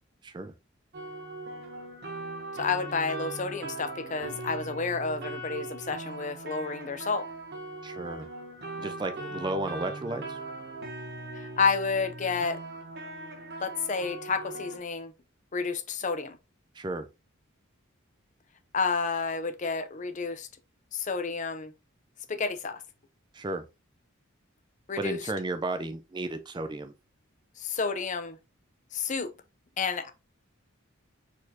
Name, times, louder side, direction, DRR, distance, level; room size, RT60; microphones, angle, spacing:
voice 1, 0.2-0.5 7.8-8.3 8.8-10.4 16.7-17.1 23.3-23.6 25.0-26.9, right 2 dB, 20° right, 0.4 m, -33 dB
sound 1, 0.9-14.8, right 2 dB, 50° right, 1.2 m, -40 dB
voice 2, 2.5-7.3 11.3-12.6 13.6-15.1 15.5-16.4 18.7-20.5 20.9-21.7 22.3-22.8 24.9-25.2 27.6-28.4 28.9-29.3 29.8-30.1, left 5 dB, 35° left, 0.6 m, -30 dB
4.5 x 4.2 x 2.8 m
head